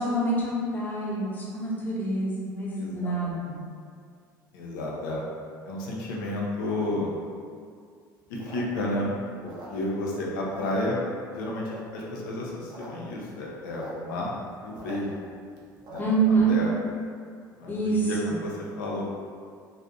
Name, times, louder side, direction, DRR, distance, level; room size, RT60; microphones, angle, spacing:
voice 1, 0.0-3.6 16.0-16.6 17.7-18.4, right 3 dB, 15° left, -6 dB, 0.6 m, -26 dB
voice 2, 2.7-3.2 4.5-5.2 5.7-7.1 8.3-9.1 9.4-11.0 11.3-14.4 14.6-15.1 15.9-16.1 16.5-16.8 17.6-19.0, left 1 dB, 70° left, -3 dB, 0.5 m, -31 dB
sound 1, 8.2-10.1 10.4-11.3 11.6-12.1 12.5-12.9 13.1-13.2 13.4-13.9 14.3-16.3, right 2 dB, 40° right, 0.5 m, -44 dB
2.6 x 2.1 x 2.3 m, 2.2 s
figure-of-eight pair, 65°, 11 cm